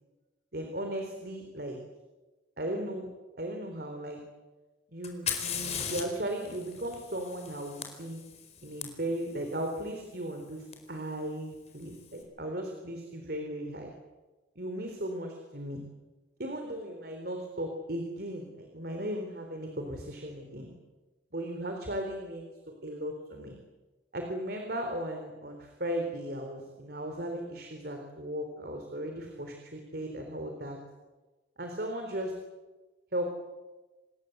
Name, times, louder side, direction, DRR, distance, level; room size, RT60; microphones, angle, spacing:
voice 1, 0.5-1.8 2.6-3.1 3.4-4.2 4.9-8.2 8.6-13.9 14.6-15.8 16.4-20.7 21.3-22.5 22.8-23.5 24.1-30.8 31.6-32.3 33.1-33.3, right 1 dB, 55° right, 4 dB, 3.8 m, -36 dB
Fire, 5.0-8.8 10.7-10.8 11.7-12.1, left 7 dB, 35° left, 4.5 m, -38 dB
27.5 x 20.5 x 8.0 m, 1.2 s
head